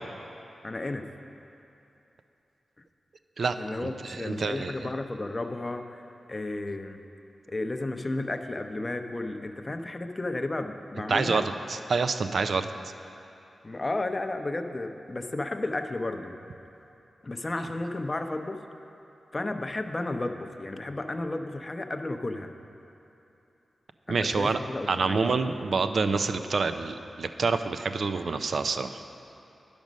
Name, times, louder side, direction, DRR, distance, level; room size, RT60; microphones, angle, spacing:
voice 1, 0.6-1.1 3.5-7.0 7.5-11.5 13.6-16.4 17.2-18.6 19.3-22.5 24.1-25.4, left 2 dB, 35° left, 7 dB, 0.6 m, -33 dB
voice 2, 3.4-4.7 11.1-12.7 24.1-24.6 24.9-29.0, right 4 dB, 70° right, 9 dB, 0.4 m, -27 dB
10.5 x 5.2 x 6.2 m, 2.8 s
cardioid pair, 50°, 0 cm